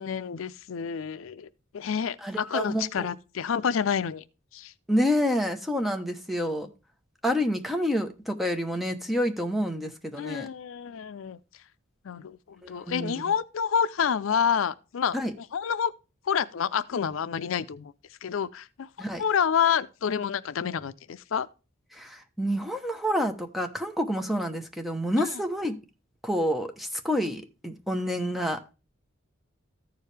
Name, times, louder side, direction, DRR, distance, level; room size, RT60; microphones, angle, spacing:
voice 1, 0.0-1.5 1.7-4.2 4.5-4.7 10.2-11.4 12.0-12.4 12.7-15.9 16.3-17.9 18.2-21.5 25.2-25.4, left 7 dB, 75° left, 0.4 m, -28 dB
voice 2, 2.2-3.1 4.9-6.7 7.2-10.5 12.6-13.1 15.1-15.3 19.0-19.2 21.9-25.7 26.2-28.6, equal, ahead, 0.8 m, -28 dB
14.5 x 4.8 x 3.3 m
head